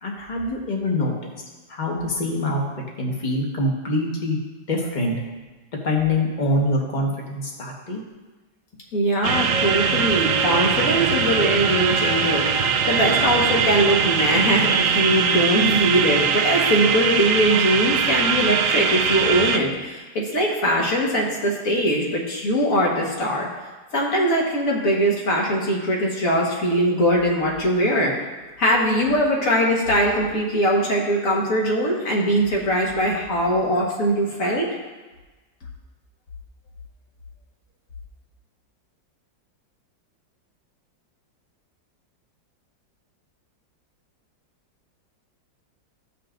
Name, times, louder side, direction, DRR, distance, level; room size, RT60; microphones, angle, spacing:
voice 1, 0.0-1.1 1.7-2.6 3.0-4.4 4.7-5.1 5.8-8.0, left 1 dB, 30° left, -1 dB, 1.3 m, -24 dB
voice 2, 8.9-23.5 23.9-28.1 28.6-34.7, equal, 50° left, -2 dB, 1.7 m, -21 dB
sound 1, 9.2-19.6, right 6 dB, 80° right, 0.7 m, -21 dB
15.0 x 5.7 x 2.5 m, 1.2 s
omnidirectional pair, 2.0 m